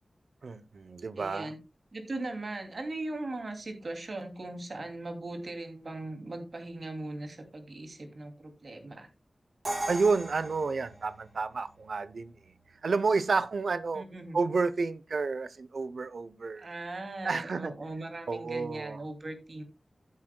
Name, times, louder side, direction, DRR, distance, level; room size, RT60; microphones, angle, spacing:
voice 1, 0.4-1.5 9.9-12.3 12.8-14.0 14.3-16.7 17.2-17.8 18.3-19.0, right 4 dB, 80° right, 0.7 m, -30 dB
voice 2, 1.2-1.6 1.9-9.1 13.9-14.4 16.6-19.6, right 2 dB, 55° right, 2.6 m, -39 dB
Crash cymbal, 9.6-11.6, right 2 dB, 40° right, 3.5 m, -37 dB
15.0 x 8.2 x 2.2 m
wide cardioid pair, 90°, 0 cm